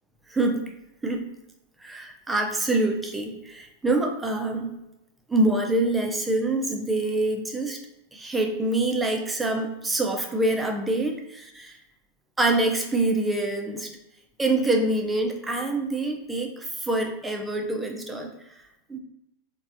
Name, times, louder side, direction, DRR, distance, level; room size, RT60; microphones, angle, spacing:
voice 1, 0.3-0.7 1.0-1.2 1.8-4.7 5.3-7.8 8.1-11.8 12.4-13.9 14.4-18.3 18.9-19.0, right 2 dB, 10° right, 2 dB, 0.5 m, -25 dB
3.1 x 2.6 x 2.5 m, 0.90 s
figure-of-eight pair, 90°, 0 cm